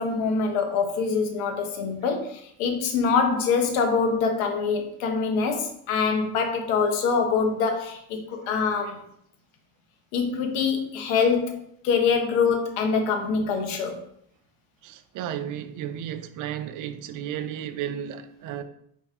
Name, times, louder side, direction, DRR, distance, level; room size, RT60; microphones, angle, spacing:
voice 1, 0.0-9.0 10.1-14.0, left 5 dB, 85° left, 1.0 m, -24 dB
voice 2, 14.8-18.6, right 10 dB, 50° right, 0.5 m, -33 dB
4.6 x 3.5 x 2.9 m
cardioid pair, 115°, 40 cm